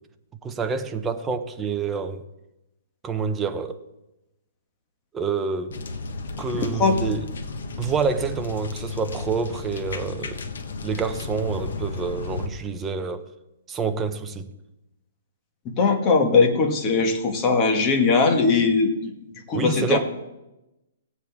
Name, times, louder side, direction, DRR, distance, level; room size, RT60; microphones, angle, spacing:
voice 1, 0.4-2.2 3.0-3.8 5.1-5.8 6.4-7.3 7.8-10.4 10.8-13.2 13.7-14.5 19.5-20.0, right 5 dB, 10° right, 0.6 m, -27 dB
sound 1, 5.7-12.5, left 3 dB, 75° left, 1.2 m, -33 dB
voice 2, 6.6-6.9 15.6-19.1 19.5-20.0, left 4 dB, 20° left, 1.4 m, -20 dB
18.0 x 8.2 x 3.5 m
hypercardioid pair, 165°, 0 cm